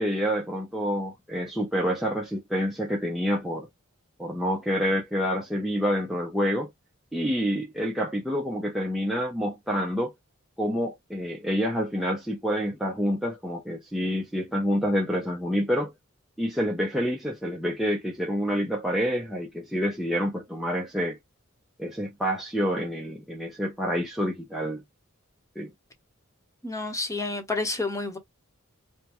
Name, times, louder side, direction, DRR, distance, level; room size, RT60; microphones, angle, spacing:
voice 1, 0.0-3.7 4.2-6.7 7.1-10.1 10.6-15.9 16.4-21.2 21.8-24.8 25.6-25.7, equal, ahead, 0.6 m, -28 dB
voice 2, 26.6-28.2, left 3 dB, 15° left, 1.0 m, -29 dB
5.1 x 2.2 x 3.0 m
head